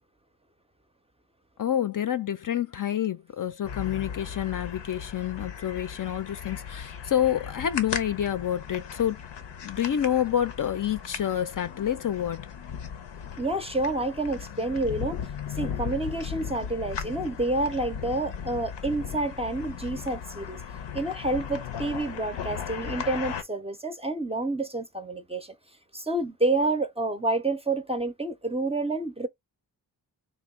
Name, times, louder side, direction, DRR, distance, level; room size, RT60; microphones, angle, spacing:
voice 1, 1.6-9.2 9.6-12.5, left 10 dB, 50° left, 0.5 m, -28 dB
sound 1, 3.6-23.4, left 7 dB, 90° left, 0.7 m, -37 dB
voice 2, 13.4-15.2 15.6-20.6 20.9-25.5 25.9-29.3, right 2 dB, 15° right, 0.5 m, -29 dB
3.4 x 2.3 x 3.5 m
cardioid pair, 70°, 42 cm